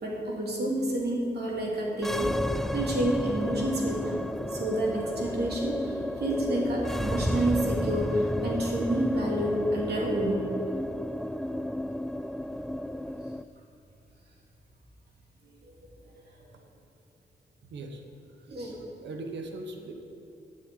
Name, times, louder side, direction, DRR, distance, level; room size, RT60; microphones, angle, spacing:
voice 1, 0.0-4.2 4.5-10.4 18.5-18.7, right 1 dB, 65° right, -3 dB, 3.3 m, -29 dB
sound 1, 1.9-13.4, left 1 dB, ahead, 0.4 m, -32 dB
voice 2, 18.5-19.9, right 2 dB, 90° right, 3 dB, 1.3 m, -40 dB
10.0 x 7.9 x 8.8 m, 2.7 s
cardioid pair, 55°, 18 cm